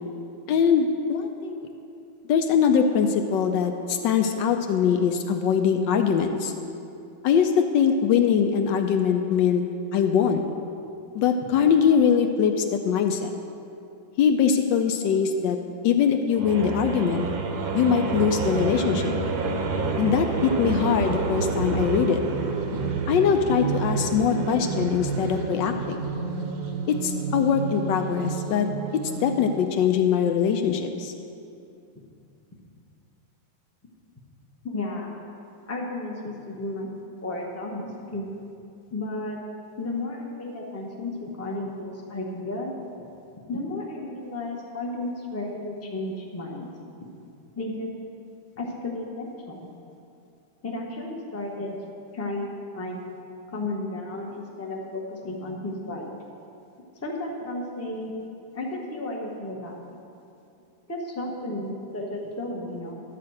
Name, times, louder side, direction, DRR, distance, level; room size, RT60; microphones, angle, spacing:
voice 1, 0.5-1.7 2.3-6.5 7.2-9.6 9.9-10.5 11.1-13.3 14.2-15.6 15.8-17.3 17.7-19.1 20.0-22.2 23.1-26.0 27.0-28.7 29.2-31.1, left 7 dB, 75° left, 6 dB, 1.2 m, -22 dB
sound 1, 16.3-29.6, right 4 dB, 60° right, 1.0 m, -29 dB
voice 2, 34.6-35.1 35.7-36.9 37.2-38.3 38.9-39.4 39.8-42.7 43.5-46.7 47.6-47.9 48.5-49.7 50.6-51.7 52.1-53.0 53.5-56.1 57.0-58.1 58.5-59.8 60.9-63.0, left 2 dB, 10° left, -1 dB, 0.7 m, -33 dB
11.5 x 4.2 x 7.7 m, 2.6 s
omnidirectional pair, 2.1 m